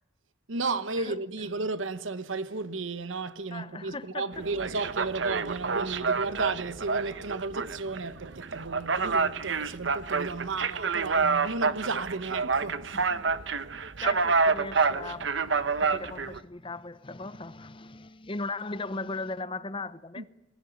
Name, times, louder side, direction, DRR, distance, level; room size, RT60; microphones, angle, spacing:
voice 1, 0.5-13.0 20.2-20.3, right 3 dB, 85° right, 1.2 m, -34 dB
voice 2, 3.5-4.4 12.9-13.6 14.0-20.2, left 3 dB, 25° left, 0.8 m, -38 dB
sound 1, 4.3-16.4, right 4 dB, 70° right, 1.0 m, -28 dB
24.0 x 16.0 x 9.7 m
head